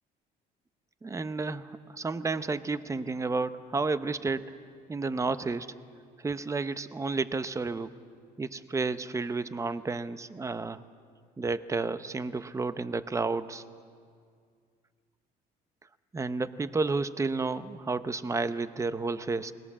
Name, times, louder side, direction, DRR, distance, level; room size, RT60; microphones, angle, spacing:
voice 1, 1.0-4.5 4.9-5.8 6.2-7.9 8.4-10.8 11.4-13.6 16.1-19.5, right 3 dB, 20° right, 12 dB, 0.8 m, -31 dB
29.0 x 20.5 x 7.4 m, 2.1 s
cardioid pair, 110°, 17 cm